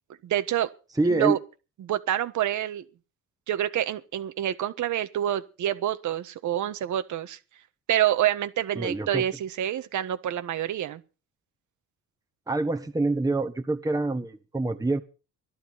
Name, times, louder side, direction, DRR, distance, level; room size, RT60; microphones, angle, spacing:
voice 1, 0.2-0.7 1.0-1.4 1.8-2.8 3.5-7.4 7.9-11.0, right 11 dB, 75° right, 1.5 m, -27 dB
voice 2, 1.0-1.4 8.7-9.2 12.5-15.0, right 2 dB, 10° right, 1.5 m, -26 dB
14.5 x 12.0 x 5.8 m
cardioid pair, 90°, 30 cm